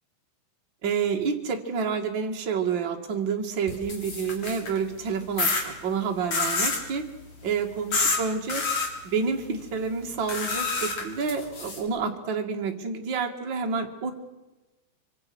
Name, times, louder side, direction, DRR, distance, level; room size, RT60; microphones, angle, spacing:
voice 1, 0.8-7.0 7.4-8.6 9.0-14.1, right 5 dB, 40° right, 2 dB, 1.7 m, -29 dB
sound 1, 3.7-4.8 5.4-5.6 6.3-6.8 7.9-8.2 8.5-8.9 10.3-11.8, left 3 dB, 40° left, 4.3 m, -27 dB
26.0 x 25.0 x 6.3 m, 1.1 s
omnidirectional pair, 5.6 m